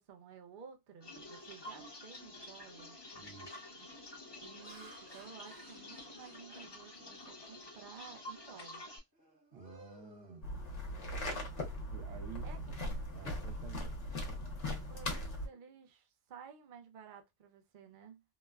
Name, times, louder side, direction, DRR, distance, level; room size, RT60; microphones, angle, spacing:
voice 1, 0.0-3.0 3.7-3.9 4.4-8.8 12.4-12.7 14.7-18.2, right 7 dB, 50° right, 0.7 m, -54 dB
sound 1, 1.0-9.0, left 1 dB, 25° left, 0.7 m, -50 dB
voice 2, 3.1-3.5 9.5-10.4 11.9-12.8 13.1-13.9, right 6 dB, 80° right, 1.1 m, -51 dB
Laughter, 4.2-8.0 8.5-8.7 9.1-11.0, right 1 dB, 20° right, 0.8 m, -60 dB
sound 2, 10.4-15.5, left 1 dB, 70° left, 1.1 m, -39 dB
3.1 x 2.1 x 2.2 m
omnidirectional pair, 1.3 m